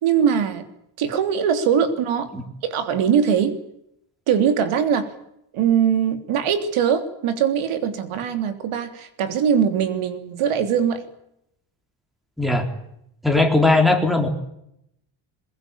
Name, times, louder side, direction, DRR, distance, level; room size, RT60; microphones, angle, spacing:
voice 1, 0.0-0.6 1.0-2.3 2.6-3.6 4.3-5.1 5.5-11.0, right 8 dB, 80° right, 8 dB, 3.4 m, -21 dB
voice 2, 13.2-14.3, left 2 dB, ahead, 5 dB, 3.6 m, -18 dB
23.0 x 22.0 x 8.7 m, 0.78 s
cardioid pair, 170°, 49 cm